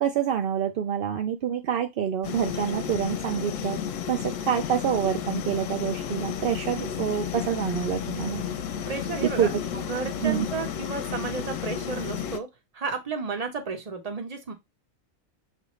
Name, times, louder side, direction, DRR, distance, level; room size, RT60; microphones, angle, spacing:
voice 1, 0.0-3.8 4.1-8.4 9.4-9.5 10.2-10.5, right 9 dB, 70° right, 0.5 m, -27 dB
sound 1, 2.2-12.4, left 8 dB, 70° left, 0.9 m, -32 dB
voice 2, 8.9-12.5 12.7-14.5, right 4 dB, 35° right, 0.8 m, -33 dB
6.7 x 2.5 x 3.1 m
omnidirectional pair, 1.5 m